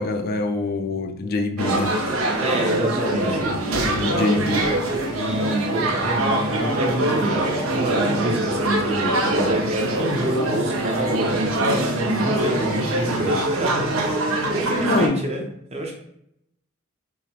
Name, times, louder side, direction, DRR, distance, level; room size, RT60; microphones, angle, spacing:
voice 1, 0.0-1.9 3.4-4.7 14.8-15.2, left 2 dB, 45° left, 6 dB, 0.4 m, -25 dB
sound 1, 1.6-15.1, right 1 dB, 85° right, 0.6 m, -23 dB
voice 2, 2.4-4.2 5.1-14.0 14.2-15.5 15.7-16.0, right 1 dB, 30° right, 1 dB, 0.7 m, -27 dB
5.6 x 2.0 x 2.9 m, 0.76 s
head